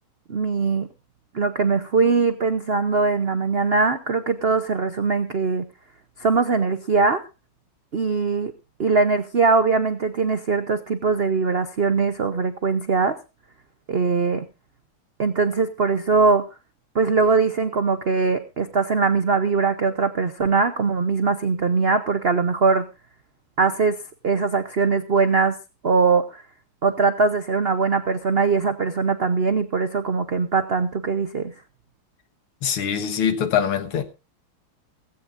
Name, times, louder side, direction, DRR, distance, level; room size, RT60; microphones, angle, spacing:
voice 1, 0.3-0.9 1.3-5.7 6.2-7.2 7.9-8.5 8.8-13.2 13.9-14.4 15.2-16.5 16.9-22.9 23.6-24.0 24.2-25.6 25.8-26.4 26.8-31.5, right 4 dB, 85° right, 0.5 m, -21 dB
voice 2, 32.6-34.0, left 8 dB, 85° left, 2.3 m, -23 dB
17.5 x 16.0 x 2.6 m
omnidirectional pair, 2.4 m